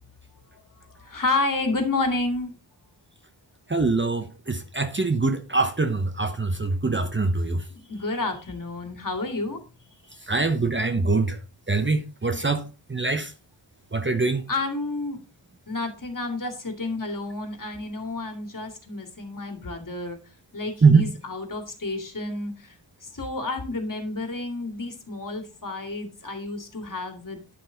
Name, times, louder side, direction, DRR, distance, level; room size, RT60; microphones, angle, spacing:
voice 1, 1.0-2.5 7.7-9.6 14.5-15.2 15.7-20.2 20.5-22.7 23.1-27.6, left 2 dB, 50° left, 2.4 m, -30 dB
voice 2, 3.7-7.6 10.3-11.4 11.7-12.6 12.9-13.3 13.9-14.4 20.8-21.1, right 3 dB, 25° right, 0.9 m, -23 dB
10.5 x 6.1 x 3.9 m
wide cardioid pair, 75°, 43 cm